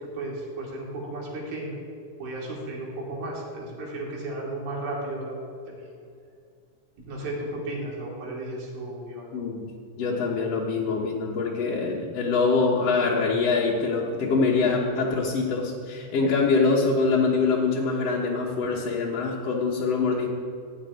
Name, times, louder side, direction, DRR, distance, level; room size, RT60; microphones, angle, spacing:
voice 1, 0.2-1.8 2.2-5.3 5.7-5.9 7.0-9.3, right 2 dB, 75° right, -3 dB, 4.5 m, -34 dB
voice 2, 9.3-9.7 10.0-20.3, left 4 dB, 60° left, -4 dB, 1.9 m, -24 dB
15.5 x 5.4 x 9.3 m, 2.4 s
omnidirectional pair, 4.2 m